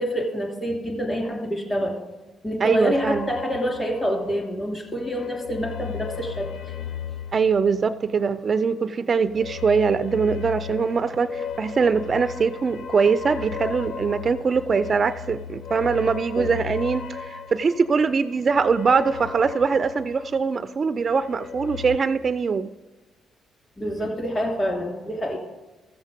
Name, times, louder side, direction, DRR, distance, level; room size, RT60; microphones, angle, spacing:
voice 1, 0.0-2.0 2.4-6.5 16.4-16.5 23.8-25.4, equal, 25° left, 1 dB, 2.7 m, -27 dB
voice 2, 2.6-3.3 7.3-22.7, right 5 dB, 40° right, 12 dB, 0.4 m, -22 dB
sound 1, 2.9-4.6 4.9-8.4 9.3-20.6 21.0-22.0, left 8 dB, 70° left, 0.6 m, -36 dB
14.5 x 7.4 x 5.1 m, 1.2 s
cardioid pair, 90°, 0 cm